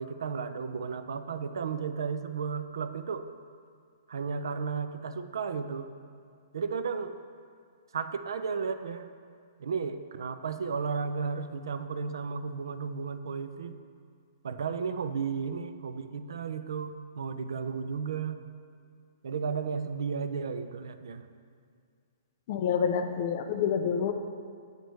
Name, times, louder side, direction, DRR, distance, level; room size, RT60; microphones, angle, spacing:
voice 1, 0.0-3.3 4.1-5.9 6.5-7.2 7.9-9.1 9.6-13.7 14.4-18.4 19.2-21.3, right 5 dB, 85° right, 10 dB, 0.4 m, -34 dB
voice 2, 22.5-24.1, left 7 dB, 30° left, 7 dB, 0.3 m, -28 dB
8.0 x 6.3 x 3.1 m, 2.2 s
hypercardioid pair, 180°, 2 cm